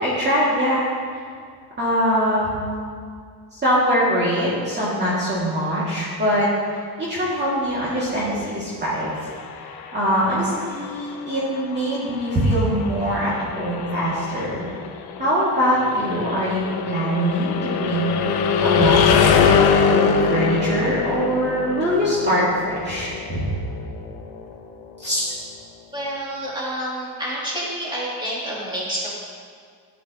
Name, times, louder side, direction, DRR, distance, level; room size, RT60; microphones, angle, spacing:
voice 1, 0.0-0.8 1.8-2.8 3.5-6.5 7.0-9.2 9.9-14.7 15.2-19.5 19.9-23.4 25.0-25.2, equal, 30° right, -8 dB, 2.4 m, -22 dB
sound 1, 9.1-24.9, left 7 dB, 75° left, 0.9 m, -24 dB
voice 2, 25.9-29.2, right 1 dB, 10° right, -6 dB, 2.8 m, -28 dB
12.5 x 9.6 x 3.0 m, 2.1 s
cardioid pair, 130°, 38 cm